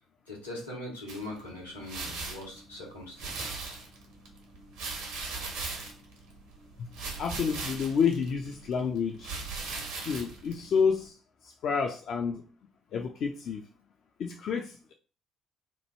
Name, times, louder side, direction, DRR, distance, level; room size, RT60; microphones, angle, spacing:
voice 1, 0.3-3.8, left 1 dB, 85° left, -1 dB, 1.2 m, -41 dB
sound 1, 1.1-11.1, right 3 dB, 65° right, 1.0 m, -40 dB
voice 2, 7.2-9.3 9.9-11.2 11.4-12.4 12.9-13.7 14.2-14.9, left 6 dB, 50° left, 3 dB, 0.4 m, -29 dB
3.0 x 2.3 x 4.2 m, 0.37 s
figure-of-eight pair, 50°, 0 cm